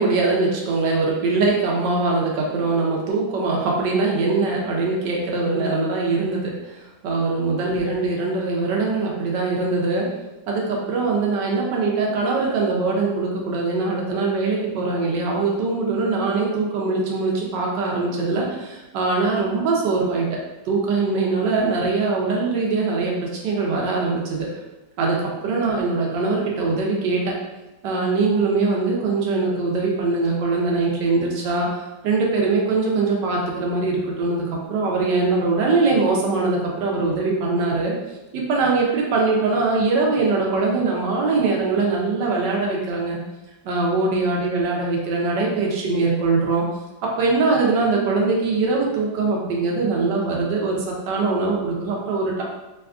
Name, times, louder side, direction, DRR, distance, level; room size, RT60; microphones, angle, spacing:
voice 1, 0.0-6.5 7.0-10.1 10.5-20.3 20.7-24.5 25.0-27.3 27.8-37.9 38.3-43.2 43.6-46.7 47.0-52.4, right 3 dB, 85° right, -2 dB, 1.3 m, -22 dB
3.4 x 2.3 x 2.4 m, 1.0 s
omnidirectional pair, 1.8 m